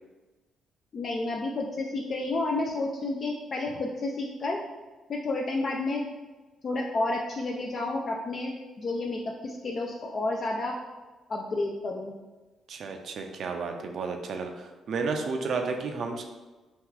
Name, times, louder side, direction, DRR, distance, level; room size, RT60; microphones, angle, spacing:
voice 1, 0.9-4.6 5.1-6.0 6.6-10.7 11.3-12.1, left 2 dB, 45° left, 0 dB, 0.3 m, -30 dB
voice 2, 12.7-16.2, right 4 dB, 65° right, 4 dB, 0.4 m, -32 dB
2.9 x 2.3 x 3.7 m, 1.2 s
cardioid pair, 90°, 0 cm